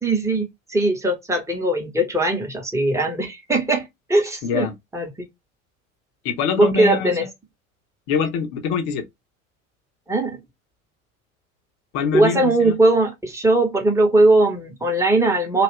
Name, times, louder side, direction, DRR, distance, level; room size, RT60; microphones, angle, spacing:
voice 1, 0.0-4.7 4.9-5.1 6.6-7.2 10.1-10.4 12.1-15.6, right 2 dB, 5° right, 1.0 m, -19 dB
voice 2, 4.4-4.7 6.2-7.3 8.1-9.0 11.9-12.8, left 6 dB, 45° left, 0.9 m, -24 dB
2.8 x 2.4 x 3.1 m
figure-of-eight pair, 75°, 42 cm